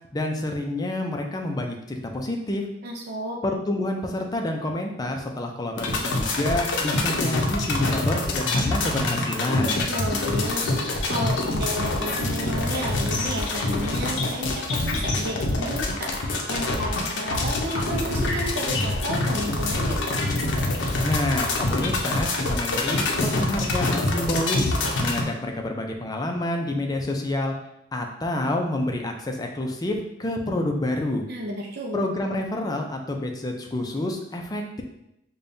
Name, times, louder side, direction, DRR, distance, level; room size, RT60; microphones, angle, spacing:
voice 1, 0.1-2.6 3.4-9.8 21.0-24.8 25.0-27.5 27.9-31.2 31.9-34.8, left 1 dB, 20° left, 2 dB, 0.4 m, -28 dB
voice 2, 2.8-3.4 9.9-20.0 31.3-32.0, equal, 55° right, -1 dB, 0.5 m, -32 dB
sound 1, 5.8-25.2, left 2 dB, 70° left, 0.6 m, -25 dB
5.1 x 2.3 x 2.6 m, 0.83 s
head